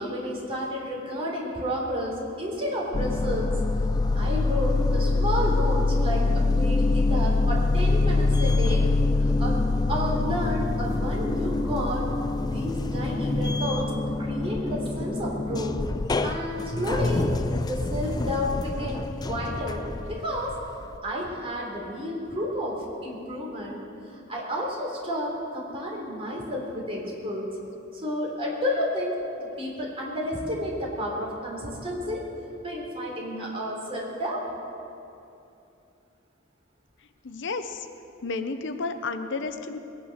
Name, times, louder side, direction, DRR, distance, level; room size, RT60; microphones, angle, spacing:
voice 1, 0.0-3.5 4.2-9.6 9.9-12.1 12.5-13.9 14.2-15.8 16.2-17.2 17.7-19.8 20.1-20.6 21.0-23.8 24.3-27.5 27.9-32.2 32.6-34.5, equal, 30° right, -3 dB, 3.6 m, -31 dB
sound 1, 2.9-21.0, left 3 dB, 20° left, 0.4 m, -25 dB
voice 2, 37.2-37.8 38.2-39.8, left 3 dB, 65° left, 9 dB, 0.8 m, -31 dB
21.5 x 9.4 x 6.4 m, 2.7 s
head